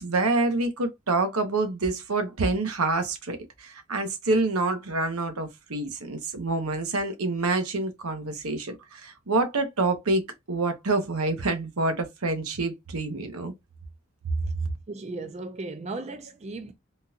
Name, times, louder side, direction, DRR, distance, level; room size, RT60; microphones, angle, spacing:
voice 1, 0.0-13.5, right 2 dB, 90° right, 1.0 m, -27 dB
voice 2, 14.9-16.7, right 3 dB, 30° right, 0.3 m, -36 dB
3.7 x 2.4 x 2.7 m
head